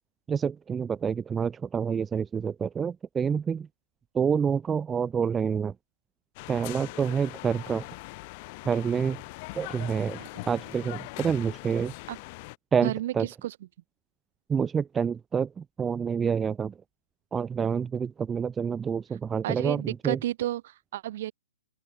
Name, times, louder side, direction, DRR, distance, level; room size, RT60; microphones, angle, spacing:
voice 1, 0.3-3.7 4.1-5.7 6.5-7.8 8.7-9.2 9.5-10.2 10.5-11.9 12.7-13.3 14.5-16.7 17.3-20.2, right 6 dB, 15° right, 0.8 m, -28 dB
sound 1, 6.4-12.6, left 26 dB, 40° left, 3.8 m, -41 dB
voice 2, 12.8-13.6 19.4-21.3, right 13 dB, 50° right, 2.8 m, -32 dB
open air
hypercardioid pair, 135°, 0 cm